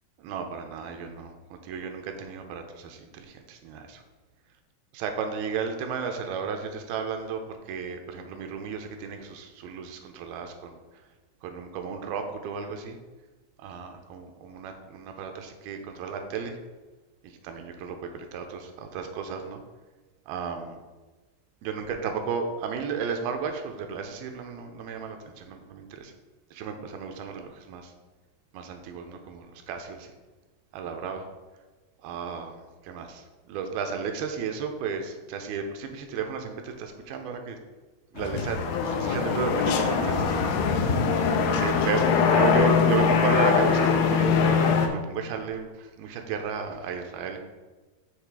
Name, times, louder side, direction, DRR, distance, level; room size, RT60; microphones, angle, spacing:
voice 1, 0.2-4.0 4.9-10.8 11.4-13.0 13.6-16.6 17.2-19.6 20.3-20.8 21.6-26.1 26.5-27.9 28.5-30.1 30.7-31.3 32.0-37.6 38.1-38.6 38.9-41.1 41.4-47.4, right 6 dB, 85° right, 5 dB, 2.5 m, -34 dB
sound 1, 38.2-44.9, left 6 dB, 90° left, 2.7 m, -22 dB
8.3 x 3.2 x 4.7 m, 1.2 s
omnidirectional pair, 4.4 m